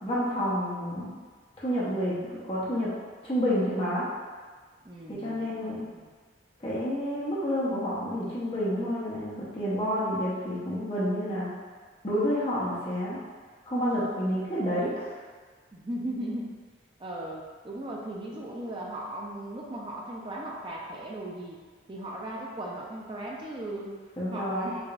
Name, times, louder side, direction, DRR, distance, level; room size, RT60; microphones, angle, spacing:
voice 1, 0.0-1.1 1.6-2.9 3.2-4.0 5.1-5.8 6.6-11.5 12.0-13.2 13.7-15.0 24.2-24.7, equal, 30° left, -9 dB, 0.8 m, -29 dB
voice 2, 4.8-6.1 15.7-16.5 17.0-21.6 21.9-24.0 24.3-24.8, right 1 dB, 25° right, -3 dB, 0.4 m, -37 dB
4.7 x 2.5 x 2.4 m, 1.5 s
head